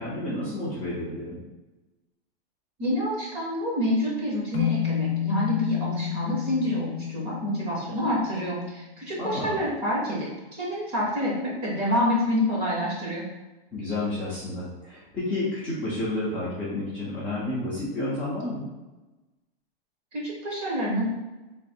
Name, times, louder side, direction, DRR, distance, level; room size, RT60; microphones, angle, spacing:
voice 1, 0.0-1.4 9.2-9.6 13.7-18.7, left 2 dB, 5° left, -13 dB, 0.6 m, -30 dB
voice 2, 2.8-10.3 10.6-13.2 20.1-21.0, left 1 dB, 20° right, -5 dB, 1.0 m, -27 dB
sound 1, 4.5-8.8, left 11 dB, 55° left, 0.9 m, -31 dB
3.4 x 2.8 x 4.3 m, 1.1 s
supercardioid pair, 170°, 30 cm